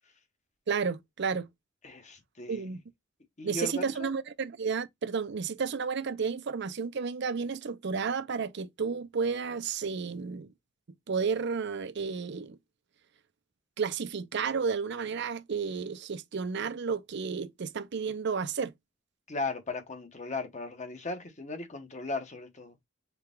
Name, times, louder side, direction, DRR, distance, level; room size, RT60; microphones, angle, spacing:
voice 1, 0.7-1.5 2.5-2.8 3.4-10.5 11.1-12.6 13.8-18.7, right 5 dB, 55° right, 0.5 m, -32 dB
voice 2, 1.8-2.7 3.4-4.1 19.3-22.7, left 3 dB, 35° left, 1.1 m, -37 dB
4.6 x 2.3 x 3.6 m
head